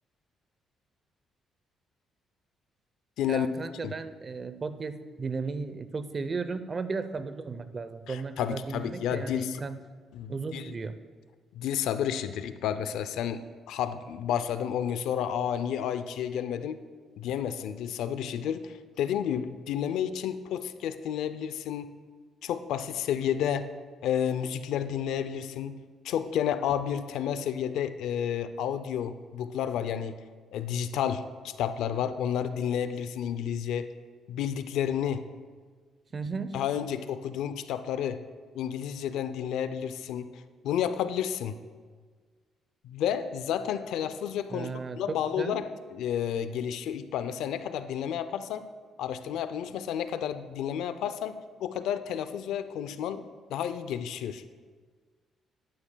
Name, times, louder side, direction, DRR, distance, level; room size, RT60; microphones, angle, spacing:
voice 1, 3.3-9.8 10.3-11.0 36.1-36.5 44.5-45.0 45.4-45.6, right 4 dB, 35° right, 12 dB, 0.6 m, -35 dB
voice 2, 8.1-9.6 10.1-10.7 11.5-13.4 13.7-16.8 17.2-21.9 22.4-23.7 24.0-25.8 26.0-30.1 30.5-33.9 34.3-35.2 36.5-38.2 38.5-41.5 42.8-48.6 49.0-53.2 53.5-54.4, left 9 dB, 85° left, 11 dB, 0.4 m, -31 dB
12.5 x 11.5 x 2.3 m, 1.5 s
cardioid pair, 90°, 0 cm